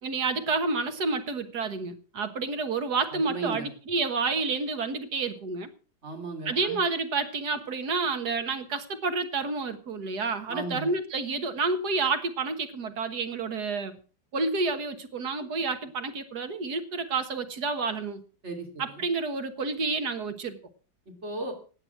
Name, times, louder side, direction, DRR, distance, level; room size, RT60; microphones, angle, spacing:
voice 1, 0.0-5.7 6.5-14.0 14.3-18.2 18.8-20.6, right 4 dB, 70° right, 8 dB, 2.0 m, -29 dB
voice 2, 3.1-3.7 6.0-6.8 10.5-10.9 18.4-19.0 21.2-21.5, right 2 dB, 40° right, 2 dB, 3.4 m, -36 dB
15.5 x 9.7 x 6.0 m, 0.38 s
omnidirectional pair, 1.8 m